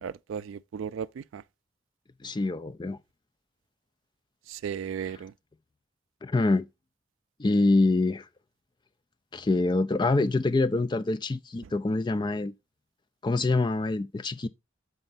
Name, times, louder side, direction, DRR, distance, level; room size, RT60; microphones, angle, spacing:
voice 1, 0.0-1.4 4.5-5.3, right 7 dB, 80° right, 0.3 m, -35 dB
voice 2, 2.2-3.0 5.1-5.2 6.2-6.7 7.4-8.3 9.3-12.5 13.2-14.5, left 2 dB, 25° left, 0.4 m, -25 dB
6.7 x 4.4 x 4.0 m
head